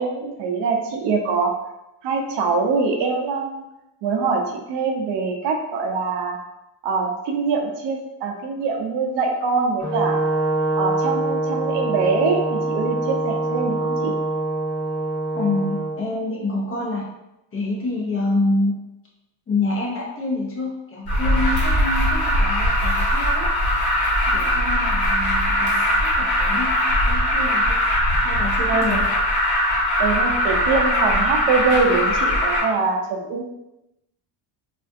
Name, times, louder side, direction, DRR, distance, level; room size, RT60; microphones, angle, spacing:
voice 1, 0.0-1.5 2.0-3.6 4.0-6.4 6.8-10.2 10.8-14.1 28.7-29.0 30.0-33.4, right 4 dB, 65° right, 2 dB, 0.6 m, -23 dB
Brass instrument, 9.8-15.9, right 2 dB, 10° right, 1.0 m, -24 dB
voice 2, 15.3-17.1 17.5-18.7 19.5-23.5 24.3-27.8 28.2-29.1, left 2 dB, 30° left, -3 dB, 0.6 m, -27 dB
Alarm, 21.1-32.6, equal, 55° left, 1.1 m, -20 dB
3.6 x 2.4 x 2.5 m, 0.92 s
cardioid pair, 165°, 45 cm